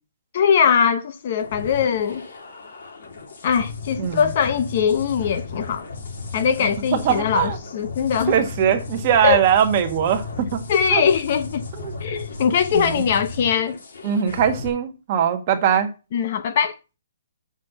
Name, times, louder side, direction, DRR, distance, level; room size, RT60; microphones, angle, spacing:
voice 1, 0.3-2.3 3.4-5.9 6.3-8.4 9.2-9.4 10.7-11.6 12.0-13.8 16.1-16.8, left 7 dB, 35° left, 0.7 m, -21 dB
sound 1, 1.4-14.7, left 3 dB, 60° left, 3.2 m, -35 dB
voice 2, 6.9-7.6 8.3-10.6 10.9-11.0 11.8-11.9 12.7-13.0 14.0-15.9, right 9 dB, 25° right, 1.3 m, -21 dB
7.3 x 6.2 x 6.7 m
hypercardioid pair, 175°, 0 cm